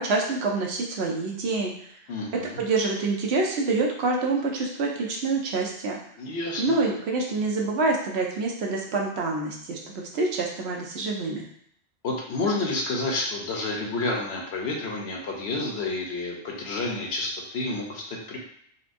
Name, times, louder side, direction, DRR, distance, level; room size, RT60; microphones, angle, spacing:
voice 1, 0.0-1.7 2.6-6.0 6.6-11.5, right 3 dB, 75° right, -1 dB, 0.9 m, -26 dB
voice 2, 2.1-2.6 6.2-6.8 12.0-18.4, left 2 dB, 75° left, -1 dB, 1.0 m, -30 dB
4.1 x 2.2 x 2.5 m, 0.68 s
omnidirectional pair, 1.1 m